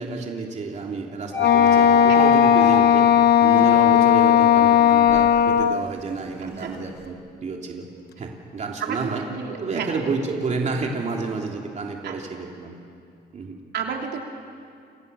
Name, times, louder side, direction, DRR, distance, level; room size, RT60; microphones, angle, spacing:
voice 1, 0.0-3.1 3.4-7.9 8.2-9.2 9.6-12.8 13.3-13.6, right 4 dB, 40° right, 0 dB, 3.1 m, -30 dB
Wind instrument woodwind instrument, 1.3-5.9, left 9 dB, 65° left, 0.7 m, -16 dB
sound 1, 1.3-4.2 4.7-7.1, left 2 dB, 15° left, 6.0 m, -32 dB
voice 2, 6.4-6.8 8.8-9.9 12.0-12.2 13.7-14.2, right 7 dB, 75° right, 1 dB, 3.4 m, -32 dB
29.5 x 27.0 x 7.0 m, 2.5 s
cardioid pair, 125°, 18 cm